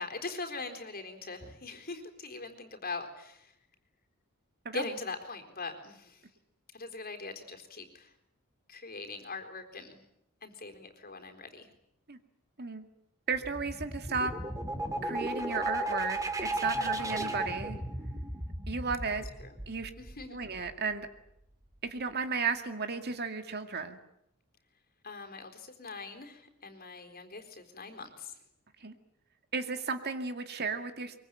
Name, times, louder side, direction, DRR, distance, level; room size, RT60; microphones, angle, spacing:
voice 1, 0.0-3.5 4.7-6.2 6.7-8.1 8.7-10.0 10.4-11.7 19.4-19.6 20.0-20.4 25.0-28.4, left 3 dB, 45° left, 5 dB, 4.0 m, -41 dB
sound 1, 13.3-21.0, right 1 dB, 15° right, 2.8 m, -35 dB
voice 2, 13.3-14.3 15.0-17.8 18.7-19.3 19.7-19.9 20.3-21.1 21.8-24.0 28.8-28.9 29.5-31.1, right 4 dB, 50° right, 7 dB, 2.2 m, -34 dB
24.0 x 23.5 x 9.1 m, 0.77 s
head